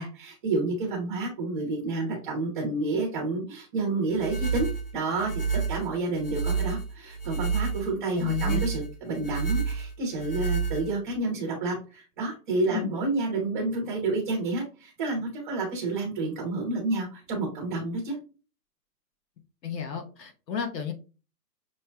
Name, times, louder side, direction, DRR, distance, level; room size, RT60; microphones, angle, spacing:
voice 1, 0.0-18.2, right 2 dB, 15° right, -3 dB, 1.0 m, -30 dB
sound 1, 4.1-11.2, right 5 dB, 40° left, 0.4 m, -30 dB
voice 2, 8.1-8.6 12.7-12.9 19.6-20.9, left 8 dB, 85° left, 4 dB, 1.1 m, -32 dB
6.4 x 3.1 x 2.2 m, 0.34 s
hypercardioid pair, 175°, 48 cm